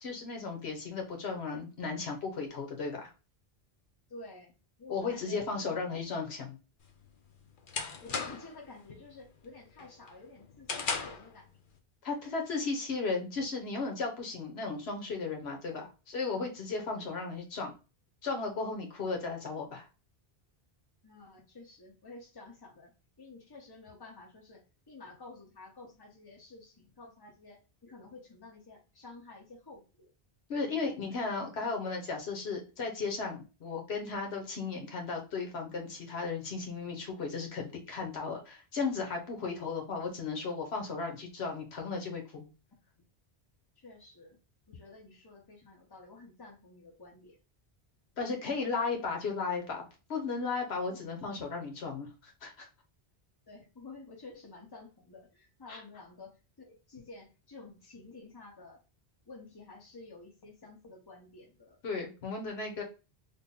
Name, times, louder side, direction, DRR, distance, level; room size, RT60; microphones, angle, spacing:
voice 1, 0.0-3.1 4.9-6.6 12.0-17.7 18.2-19.9 30.5-42.5 48.2-49.8 50.1-52.7 55.7-55.8 61.8-62.8, left 4 dB, 75° left, 2 dB, 1.2 m, -35 dB
voice 2, 4.1-5.8 8.0-11.6 16.8-17.0 21.0-30.1 30.6-31.4 43.8-44.4 44.7-47.4 50.9-51.0 53.5-58.8 59.2-61.8, left 3 dB, 25° left, 0 dB, 0.9 m, -51 dB
sound 1, 6.8-8.6 9.0-9.4 9.8-11.3, left 5 dB, 55° left, 0.7 m, -36 dB
3.6 x 2.1 x 3.7 m, 0.31 s
omnidirectional pair, 1.1 m